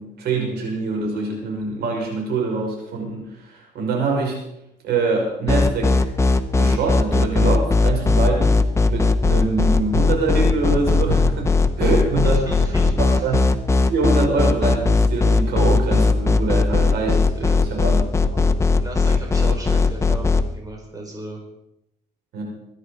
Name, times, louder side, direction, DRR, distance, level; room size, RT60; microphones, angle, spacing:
voice 1, 0.0-4.4 4.8-6.1 6.6-8.6 8.9-12.4 13.0-13.4 13.9-18.5 22.3-22.4, right 3 dB, 70° right, 1 dB, 5.7 m, -24 dB
sound 1, 5.5-20.4, left 3 dB, 15° left, 1.1 m, -17 dB
voice 2, 12.2-13.3 17.3-17.9 18.8-21.4, right 1 dB, 20° right, 1 dB, 4.9 m, -36 dB
23.5 x 10.5 x 5.1 m, 0.83 s
cardioid pair, 110°, 17 cm